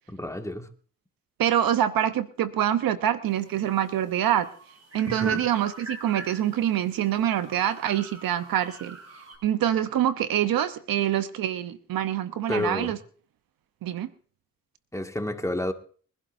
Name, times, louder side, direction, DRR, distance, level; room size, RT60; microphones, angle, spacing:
voice 1, 0.1-0.7 5.1-5.4 12.5-13.0 14.9-15.7, left 1 dB, 10° left, 2.0 m, -30 dB
voice 2, 1.4-4.5 4.9-9.0 9.4-13.0 13.8-14.1, right 11 dB, 85° right, 0.9 m, -25 dB
sound 1, 3.3-9.4, right 3 dB, 50° right, 6.1 m, -41 dB
23.5 x 11.5 x 2.7 m
supercardioid pair, 45°, 34 cm